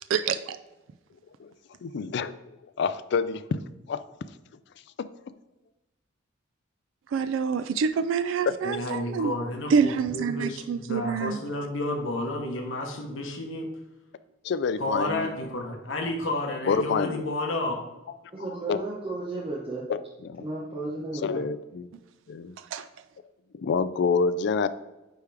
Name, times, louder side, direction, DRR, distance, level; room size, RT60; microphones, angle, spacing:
voice 1, 0.1-0.6 7.1-9.3 9.7-11.4 22.6-22.9, right 6 dB, 75° right, 11 dB, 0.3 m, -26 dB
voice 2, 1.8-2.3 2.8-3.6 3.9-4.0 5.0-5.1 8.5-8.6 14.4-15.4 16.7-17.3 18.7-18.8 19.9-20.4 21.2-21.9 22.3-22.6 23.5-24.7, left 5 dB, 60° left, 14 dB, 0.3 m, -27 dB
voice 3, 8.6-13.7 14.8-17.7, left 1 dB, 75° left, 2 dB, 1.1 m, -31 dB
voice 4, 18.3-19.9 20.4-21.4, right 2 dB, 25° right, -5 dB, 0.9 m, -34 dB
9.4 x 3.5 x 3.4 m, 1.0 s
head